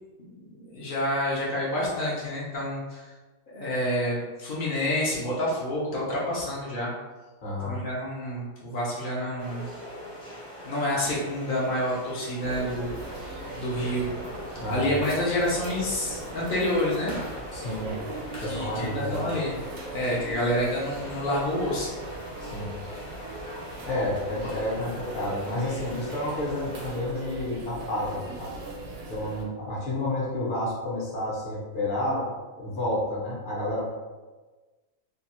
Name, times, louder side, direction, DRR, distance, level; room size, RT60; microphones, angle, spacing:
voice 1, 0.7-3.0 3.5-6.9 7.6-9.7 10.6-12.9 13.5-14.1 14.6-17.2 18.4-19.6 19.9-21.9, left 1 dB, 75° left, -6 dB, 0.4 m, -28 dB
voice 2, 7.4-7.8 14.6-14.9 17.5-18.0 18.4-19.2 22.4-22.7 23.9-28.6 29.1-32.3 32.6-33.8, left 1 dB, 45° left, -6 dB, 0.7 m, -30 dB
sound 1, 9.4-26.9, equal, 5° left, 0.4 m, -41 dB
sound 2, 12.4-29.4, right 2 dB, 70° right, 0.6 m, -40 dB
2.7 x 2.3 x 2.9 m, 1.3 s
omnidirectional pair, 1.7 m